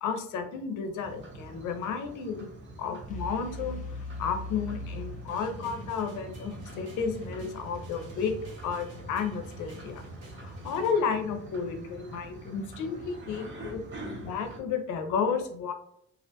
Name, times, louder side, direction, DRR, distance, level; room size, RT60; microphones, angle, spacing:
voice 1, 0.0-2.5 2.8-3.9 4.2-8.3 8.6-10.0 10.3-13.8 14.1-15.7, left 6 dB, 80° left, 7 dB, 0.5 m, -32 dB
sound 1, 1.0-14.6, right 2 dB, 40° right, 0.7 m, -45 dB
sound 2, 3.1-6.0, left 2 dB, 25° left, 0.5 m, -39 dB
sound 3, 5.3-10.9, right 1 dB, 75° right, 1.2 m, -47 dB
2.4 x 2.1 x 2.7 m, 0.70 s
cardioid pair, 90°, 30 cm